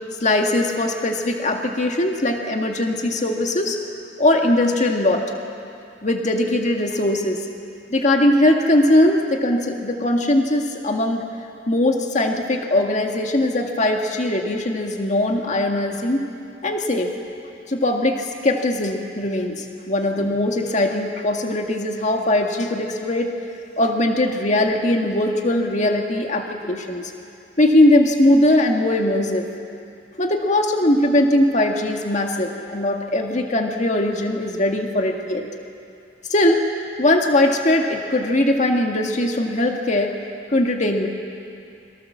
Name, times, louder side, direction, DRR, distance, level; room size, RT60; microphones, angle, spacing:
voice 1, 0.2-3.8 4.2-5.2 6.0-7.4 7.9-11.2 11.7-16.3 16.6-17.1 17.7-23.3 23.8-27.0 27.6-29.4 30.2-35.4 36.3-36.6 37.0-40.1 40.5-41.1, left 1 dB, 45° left, 2 dB, 1.9 m, -20 dB
28.5 x 23.0 x 7.3 m, 2.5 s
head